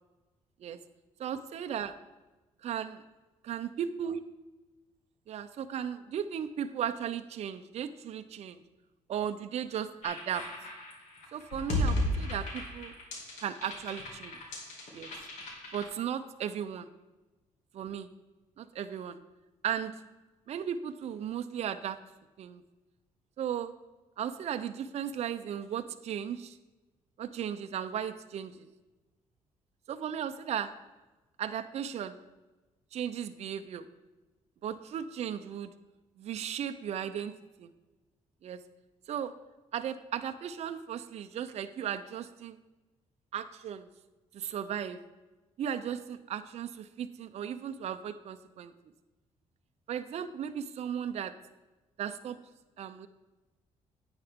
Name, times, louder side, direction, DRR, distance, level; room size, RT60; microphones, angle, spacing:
voice 1, 1.2-2.0 2.6-3.0 3.5-4.2 5.3-8.6 9.1-10.5 11.3-12.9 13.4-14.4 14.9-15.1 15.7-16.9 17.7-18.1 18.6-19.2 19.6-19.9 20.5-22.0 22.4-22.6 23.4-23.7 24.2-26.6 27.2-28.7 29.9-30.7 31.4-32.2 32.9-33.9 34.6-35.7 36.2-37.3 37.6-37.7 38.4-38.6 39.1-39.3 39.7-42.6 43.3-43.9 44.3-45.0 45.6-48.7 49.9-51.3 52.0-52.4 52.8-53.1, right 9 dB, 60° right, 8 dB, 0.6 m, -36 dB
sound 1, 10.0-15.8, left 1 dB, 85° left, 2.3 m, -35 dB
10.5 x 8.8 x 3.6 m, 1.1 s
cardioid pair, 100°, 13 cm